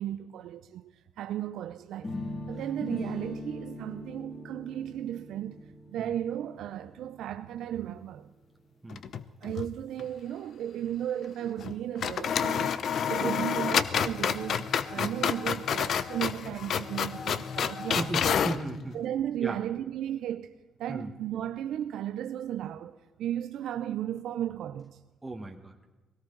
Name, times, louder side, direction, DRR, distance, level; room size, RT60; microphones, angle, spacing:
voice 1, 0.0-2.1 2.5-5.6 5.9-8.3 9.4-12.8 13.1-18.4 18.9-25.0, right 11 dB, 80° right, 0.5 m, -35 dB
sound 1, 2.0-8.0, left 2 dB, 30° left, 6.1 m, -41 dB
sound 2, 8.9-9.7 10.0-10.1 11.6-11.7 12.0-18.6, left 7 dB, 60° left, 0.7 m, -29 dB
voice 2, 17.9-19.0 19.4-19.6 20.9-21.1 25.2-25.8, right 2 dB, 15° right, 1.6 m, -36 dB
20.5 x 17.5 x 3.9 m
cardioid pair, 90°, 0 cm